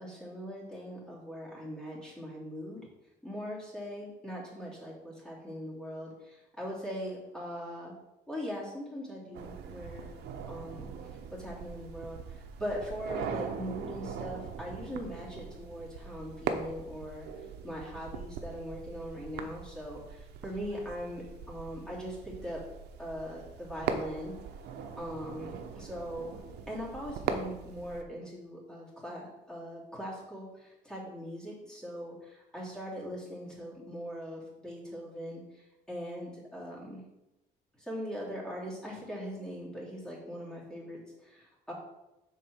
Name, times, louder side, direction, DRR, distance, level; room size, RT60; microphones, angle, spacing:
voice 1, 0.0-2.8 3.2-7.9 8.3-10.1 10.5-10.9 11.3-17.3 17.6-22.6 23.0-24.3 25.0-26.4 26.7-37.0 37.8-41.7, equal, 5° left, -5 dB, 3.2 m, -40 dB
sound 1, 9.3-28.0, right 6 dB, 80° right, 0.9 m, -41 dB
6.7 x 4.7 x 6.3 m, 0.93 s
cardioid pair, 110°, 17 cm